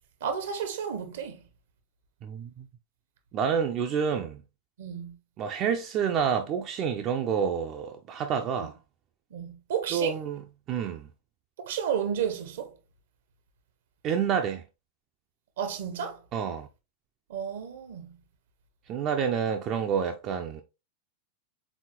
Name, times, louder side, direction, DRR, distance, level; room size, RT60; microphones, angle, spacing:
voice 1, 0.2-1.4 4.8-5.1 8.6-8.7 9.3-10.2 11.6-12.7 15.6-16.2 17.3-18.1, right 8 dB, 60° right, 0.8 m, -32 dB
voice 2, 2.2-2.7 3.3-4.4 5.4-8.7 9.9-10.4 10.7-11.1 14.0-14.6 16.3-16.7 18.9-20.6, right 7 dB, 35° right, 0.4 m, -28 dB
4.1 x 3.8 x 2.9 m
figure-of-eight pair, 90°, 0 cm